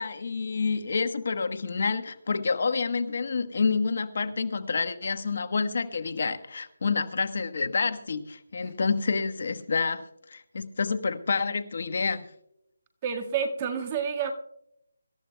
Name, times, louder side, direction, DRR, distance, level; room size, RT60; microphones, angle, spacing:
voice 1, 0.0-10.0 10.3-12.2, left 4 dB, 55° left, 9 dB, 1.2 m, -28 dB
voice 2, 13.0-14.3, right 7 dB, 25° right, 5 dB, 1.6 m, -29 dB
25.5 x 13.5 x 2.2 m, 0.81 s
figure-of-eight pair, 160°, 0 cm